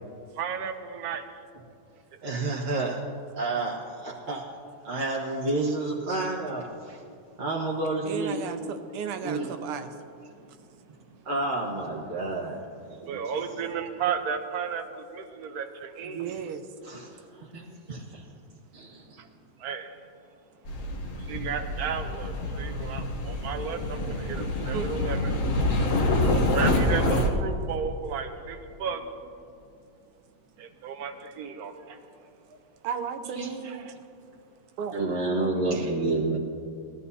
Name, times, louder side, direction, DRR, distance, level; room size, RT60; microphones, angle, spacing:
voice 1, 0.3-1.2 2.1-2.4 10.3-11.0 13.1-16.3 19.2-19.3 19.6-20.0 21.2-25.9 26.2-29.3 30.6-32.0 32.5-32.6 33.6-33.9, right 6 dB, 70° right, 7 dB, 0.9 m, -34 dB
voice 2, 2.2-3.0 3.4-4.4 4.8-7.0 7.4-8.4 9.2-9.5 11.2-13.4 16.8-18.3 18.7-19.2 33.3-33.6 34.9-36.4, right 2 dB, 30° right, -5 dB, 1.1 m, -30 dB
voice 3, 8.1-9.9 16.1-16.6 24.6-24.9 32.8-33.9 34.8-35.0, right 7 dB, 85° right, 8 dB, 1.7 m, -34 dB
sound 1, 20.6-27.3, left 1 dB, 45° left, 1.1 m, -27 dB
20.0 x 13.5 x 2.8 m, 2.5 s
omnidirectional pair, 2.4 m